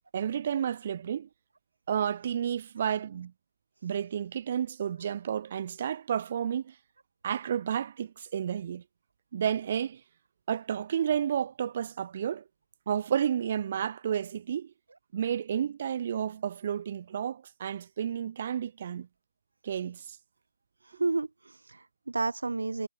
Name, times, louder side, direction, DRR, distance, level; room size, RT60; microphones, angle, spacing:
voice 1, 0.1-1.3 1.9-3.3 3.8-6.7 7.2-8.8 9.3-10.0 10.5-12.4 12.9-14.7 15.1-19.1 19.6-20.2, right 9 dB, 35° right, 7.7 m, -31 dB
voice 2, 21.0-22.9, right 3 dB, 75° right, 5.7 m, -31 dB
figure-of-eight pair, 160°, 0 cm